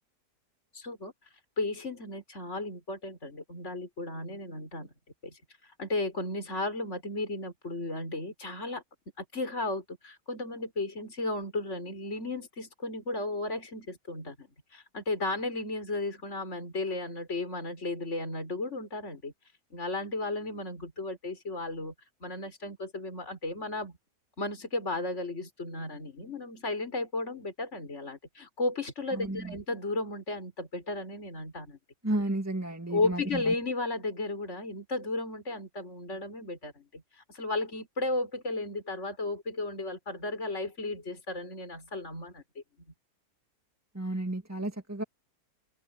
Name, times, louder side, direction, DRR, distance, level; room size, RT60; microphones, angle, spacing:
voice 1, 0.7-1.1 1.6-4.9 5.2-8.8 9.2-19.3 19.7-21.9 22.2-24.0 24.4-31.8 32.9-42.6, left 2 dB, 45° left, 5.3 m, -34 dB
voice 2, 29.1-29.6 32.0-33.5 43.9-45.0, right 1 dB, 10° right, 2.0 m, -32 dB
omnidirectional pair, 1.7 m